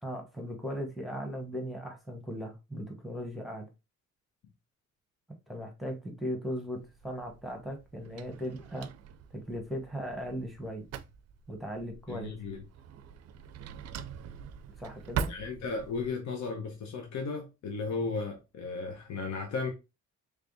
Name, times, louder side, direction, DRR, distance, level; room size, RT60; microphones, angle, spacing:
voice 1, 0.0-3.7 5.5-8.9 9.3-10.8 11.5-12.3 14.8-15.3, equal, ahead, 1.1 m, -38 dB
Drawer open or close, 6.8-16.1, right 7 dB, 55° right, 0.4 m, -42 dB
voice 2, 12.1-12.6 15.3-19.7, left 4 dB, 65° left, 0.9 m, -35 dB
3.4 x 3.4 x 2.6 m
cardioid pair, 90°, 30 cm